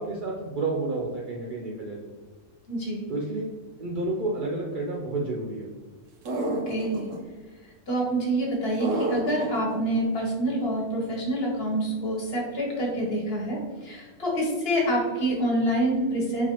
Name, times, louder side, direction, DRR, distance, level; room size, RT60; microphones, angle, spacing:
voice 1, 0.0-2.0 3.1-3.4 3.8-5.7, right 2 dB, 60° right, -2 dB, 0.5 m, -30 dB
voice 2, 2.7-3.1 6.4-7.1 7.9-16.5, right 1 dB, 55° left, -3 dB, 1.1 m, -27 dB
sound 1, 6.3-7.2 8.8-9.8, right 1 dB, 85° right, 1.0 m, -29 dB
4.0 x 2.5 x 2.9 m, 1.4 s
omnidirectional pair, 1.3 m